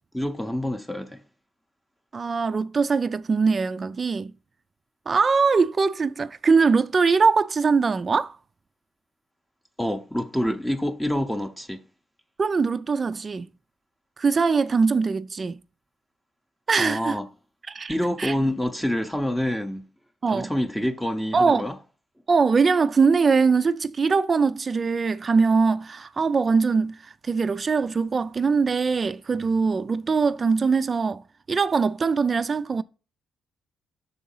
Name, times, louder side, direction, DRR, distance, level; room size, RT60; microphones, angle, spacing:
voice 1, 0.1-1.2 9.8-11.8 16.8-17.3 17.9-19.8 20.3-21.8, left 1 dB, 5° left, 0.6 m, -27 dB
voice 2, 2.1-4.3 5.1-8.4 12.4-13.5 14.2-15.6 16.7-17.2 17.7-18.3 20.2-20.5 21.3-21.7 22.3-31.2 31.5-32.8, right 4 dB, 35° right, 0.3 m, -22 dB
6.1 x 3.7 x 5.5 m
cardioid pair, 90°, 0 cm